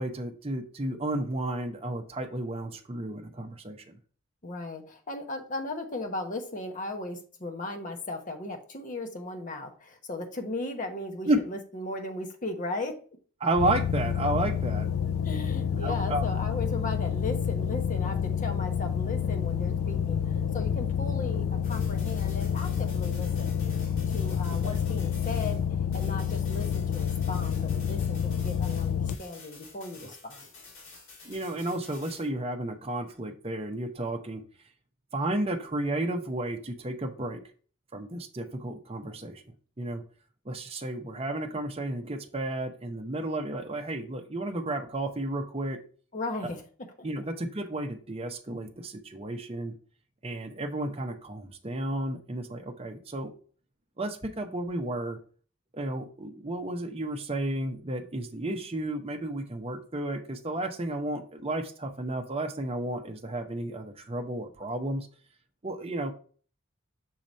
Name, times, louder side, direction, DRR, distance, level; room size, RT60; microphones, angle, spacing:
voice 1, 0.0-4.0 11.3-11.4 13.4-14.9 15.8-16.2 24.6-24.8 31.2-34.4 35.1-37.4 37.9-39.4 39.8-40.0 40.4-45.8 47.0-49.7 50.2-53.3 54.0-55.2 55.7-65.1 65.6-66.1, right 1 dB, 25° right, 4 dB, 0.7 m, -32 dB
voice 2, 4.4-13.0 15.2-23.6 24.1-25.6 25.9-30.5 46.1-46.6, left 2 dB, 35° left, 4 dB, 1.0 m, -37 dB
sound 1, 13.5-29.1, left 7 dB, 75° left, 0.4 m, -29 dB
sound 2, 21.6-25.7 25.9-32.3, left 3 dB, 60° left, 2.4 m, -50 dB
6.4 x 2.9 x 5.1 m, 0.42 s
head